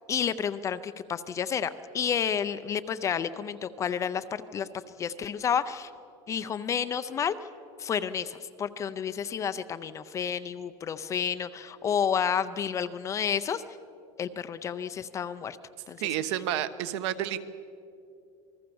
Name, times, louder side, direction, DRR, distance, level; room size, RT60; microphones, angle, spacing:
voice 1, 0.1-4.7 5.0-5.9 6.3-7.3 7.8-13.6 14.2-15.6 15.9-16.1, left 7 dB, 20° left, 12 dB, 0.5 m, -30 dB
voice 2, 16.0-17.5, right 11 dB, 60° right, 11 dB, 1.2 m, -30 dB
27.5 x 20.0 x 7.0 m, 2.6 s
supercardioid pair, 170°, 16 cm